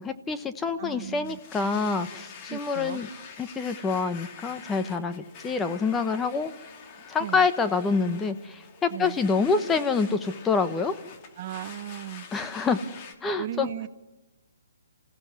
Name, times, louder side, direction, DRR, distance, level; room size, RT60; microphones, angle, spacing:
voice 1, 0.0-3.1 3.4-6.5 7.1-10.9 12.3-12.8 13.2-13.7, left 4 dB, 10° left, 9 dB, 1.1 m, -26 dB
voice 2, 0.8-1.4 2.5-3.0 7.2-7.4 8.9-9.2 11.4-12.3 13.4-13.9, right 13 dB, 45° right, 12 dB, 1.0 m, -36 dB
Domestic sounds home sounds, 1.2-13.1, left 6 dB, 30° left, 2.5 m, -46 dB
28.5 x 16.0 x 9.6 m, 1.2 s
hypercardioid pair, 145°, 0 cm